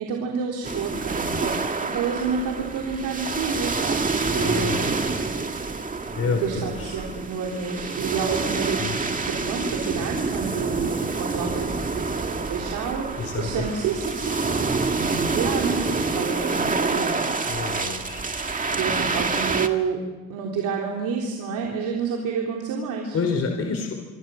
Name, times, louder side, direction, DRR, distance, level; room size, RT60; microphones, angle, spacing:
voice 1, 0.0-5.2 6.3-8.9 9.3-14.6 14.9-17.2 18.7-23.2, right 6 dB, 90° right, -1 dB, 3.5 m, -29 dB
sound 1, 0.6-19.7, right 3 dB, 25° right, 2.1 m, -27 dB
voice 2, 4.3-4.9 6.1-6.9 8.8-9.0 13.2-13.5 17.4-18.2 23.1-23.9, left 5 dB, 50° left, 3 dB, 4.7 m, -28 dB
26.0 x 24.5 x 6.3 m, 1.2 s
cardioid pair, 90°, 30 cm